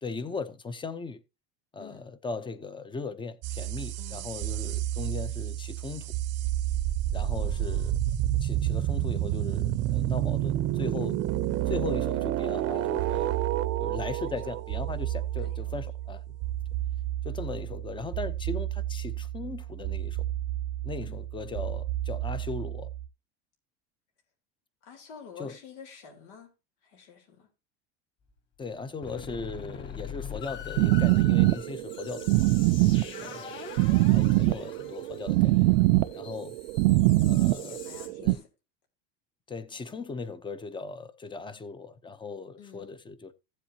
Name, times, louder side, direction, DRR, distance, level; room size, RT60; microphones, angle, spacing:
voice 1, 0.0-1.2 1.7-6.1 7.1-8.0 8.4-11.2 11.7-13.3 13.8-16.2 17.2-20.2 20.8-22.9 25.4-25.6 28.6-32.5 33.2-33.5 34.1-35.6 36.1-36.6 37.2-37.8 38.2-38.4 39.5-43.3, left 4 dB, 15° left, 0.7 m, -38 dB
sound 1, 3.4-23.1, right 13 dB, 45° right, 0.7 m, -30 dB
voice 2, 4.0-4.3 4.6-4.8 7.3-8.0 11.8-12.1 14.3-14.4 15.4-15.8 21.0-21.2 24.8-26.5 26.8-27.5 32.8-33.4 37.6-38.5 42.6-42.9, left 7 dB, 85° left, 3.7 m, -49 dB
sound 2, 28.3-28.4 28.7-28.8 29.0-38.1, left 7 dB, 35° left, 3.7 m, -43 dB
sound 3, 30.8-38.3, right 19 dB, 90° right, 0.5 m, -23 dB
15.5 x 7.6 x 2.8 m
cardioid pair, 140°, 34 cm